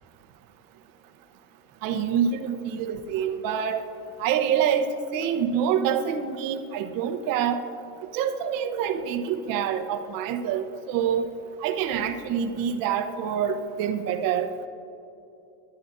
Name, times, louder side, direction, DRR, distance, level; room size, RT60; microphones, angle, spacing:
voice 1, 1.8-3.8 4.2-7.6 8.1-11.3 11.6-14.5, right 8 dB, 50° right, 7 dB, 1.1 m, -26 dB
23.5 x 11.0 x 2.7 m, 2.9 s
supercardioid pair, 120°, 42 cm